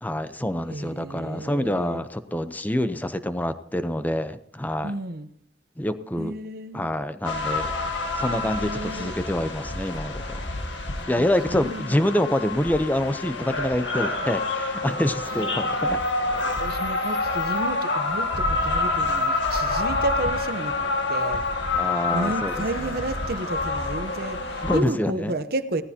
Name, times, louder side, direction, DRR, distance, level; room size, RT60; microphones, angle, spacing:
voice 1, 0.0-4.9 5.8-6.3 6.7-7.7 8.2-10.5 11.1-16.0 21.8-22.5 24.6-25.3, left 1 dB, 10° left, 11 dB, 0.7 m, -26 dB
voice 2, 0.7-2.0 4.8-5.3 6.2-7.0 8.4-9.1 11.2-12.0 15.3-20.8 21.1-21.4 22.1-25.8, right 2 dB, 55° right, 11 dB, 0.9 m, -32 dB
sound 1, 7.2-24.8, left 2 dB, 85° left, 1.8 m, -27 dB
18.0 x 14.5 x 2.9 m, 0.68 s
head